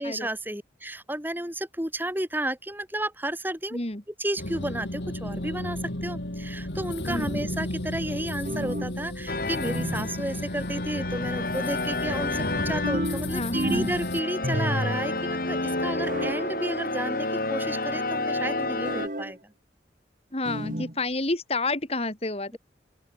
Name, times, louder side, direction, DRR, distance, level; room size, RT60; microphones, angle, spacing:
voice 1, 0.0-3.8 4.2-19.4, right 1 dB, 10° right, 7.3 m, -32 dB
voice 2, 3.7-4.0 7.0-7.5 13.3-13.9 20.3-22.6, left 2 dB, 35° left, 3.0 m, -30 dB
sound 1, 4.4-14.2, left 1 dB, 75° left, 3.3 m, -33 dB
sound 2, 8.5-9.0 9.7-10.2 12.8-14.0 14.4-15.1 16.0-16.5 18.8-19.4 20.5-21.0, right 1 dB, 45° right, 3.3 m, -31 dB
sound 3, 9.3-19.1, left 2 dB, 55° left, 4.9 m, -30 dB
open air
head